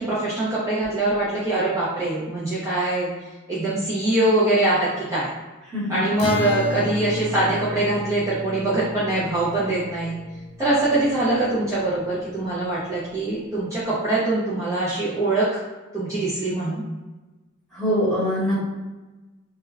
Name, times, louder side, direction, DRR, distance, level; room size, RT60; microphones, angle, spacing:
voice 1, 0.0-3.1 3.5-5.3 5.9-10.1 10.6-15.6 15.9-16.8, right 2 dB, 15° right, -10 dB, 0.5 m, -23 dB
Acoustic guitar, 6.2-11.7, left 3 dB, 70° left, 0.4 m, -33 dB
voice 2, 17.7-18.7, equal, ahead, -11 dB, 1.1 m, -23 dB
2.3 x 2.1 x 3.2 m, 1.2 s
head